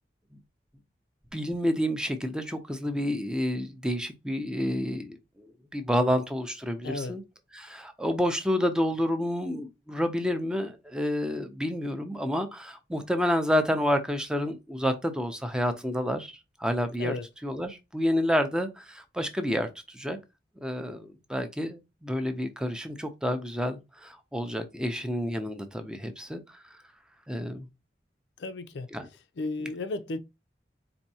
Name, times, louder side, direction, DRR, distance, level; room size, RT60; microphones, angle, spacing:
voice 1, 1.3-7.2 7.5-20.2 20.6-26.8 27.3-27.7 28.9-29.1, equal, 5° right, 0.5 m, -29 dB
voice 2, 6.8-7.2 17.0-17.3 28.4-28.9 29.4-30.2, left 2 dB, 75° left, 0.4 m, -33 dB
4.3 x 2.7 x 2.7 m
head